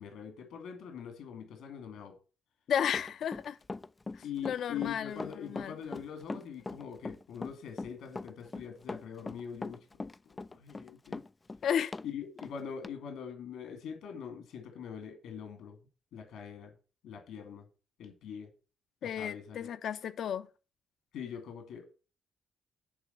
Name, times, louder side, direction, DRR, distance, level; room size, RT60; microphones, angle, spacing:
voice 1, 0.0-2.1 4.2-9.8 10.5-11.2 12.0-15.8 16.1-16.7 17.0-17.6 18.0-18.5 19.0-19.7 21.1-21.9, left 8 dB, 85° left, 2.3 m, -43 dB
voice 2, 2.7-3.6 4.1-5.7 11.6-11.9 19.0-20.5, left 8 dB, 65° left, 0.8 m, -33 dB
Run, 2.9-12.1 12.4-12.5 12.8-12.9, left 3 dB, 20° left, 0.4 m, -40 dB
9.9 x 3.7 x 6.7 m
cardioid pair, 90°, 0 cm